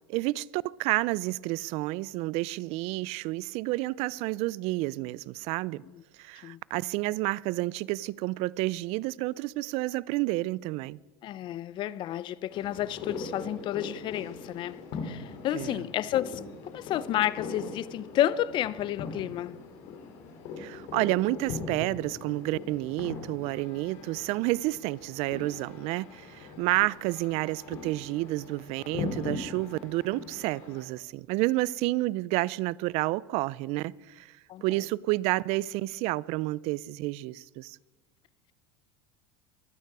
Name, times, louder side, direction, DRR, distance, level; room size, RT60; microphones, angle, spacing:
voice 1, 0.1-5.8 6.2-11.0 15.5-15.8 20.6-34.3 34.6-37.8, right 20 dB, 55° right, 0.4 m, -30 dB
voice 2, 11.2-19.6 34.5-34.6, left 12 dB, 40° left, 0.5 m, -31 dB
sound 1, 12.5-30.8, left 5 dB, 65° left, 3.1 m, -41 dB
24.0 x 9.2 x 4.8 m
supercardioid pair, 135°, 13 cm